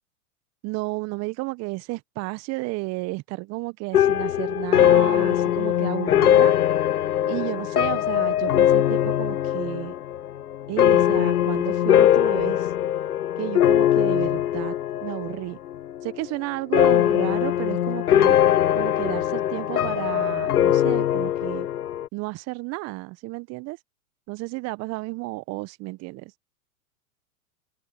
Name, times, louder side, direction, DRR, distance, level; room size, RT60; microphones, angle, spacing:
voice 1, 0.6-6.5 7.2-9.9 10.7-12.7 13.4-14.8 15.0-15.6 16.0-18.4 18.7-21.7 22.1-23.8 24.3-26.3, right 23 dB, 35° right, 1.4 m, -32 dB
sound 1, 3.9-15.4 15.7-16.3 16.7-22.1, left 11 dB, 85° left, 0.6 m, -21 dB
open air
figure-of-eight pair, 100°, 44 cm